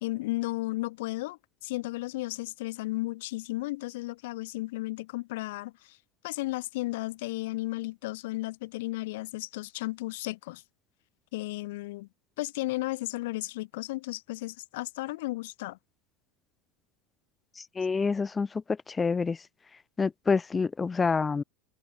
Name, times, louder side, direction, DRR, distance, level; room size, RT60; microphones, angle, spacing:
voice 1, 0.0-6.0 6.2-10.6 11.3-12.1 12.4-15.8, left 20 dB, 75° left, 0.8 m, -34 dB
voice 2, 17.6-19.4 20.0-21.4, left 4 dB, 15° left, 0.4 m, -27 dB
supercardioid pair, 170°, 0 cm